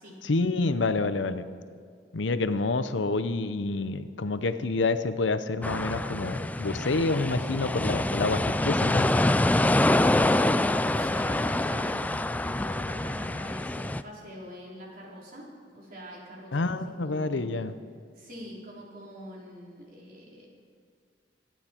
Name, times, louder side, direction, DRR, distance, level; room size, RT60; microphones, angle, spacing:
voice 1, 0.2-1.4 2.1-9.1 16.5-17.7, left 3 dB, 80° left, 11 dB, 0.7 m, -28 dB
sound 1, 5.6-14.0, left 1 dB, 10° left, 0.3 m, -26 dB
voice 2, 10.0-17.5 18.2-20.5, equal, 50° right, -3 dB, 3.8 m, -44 dB
24.0 x 9.2 x 4.5 m, 2.2 s
head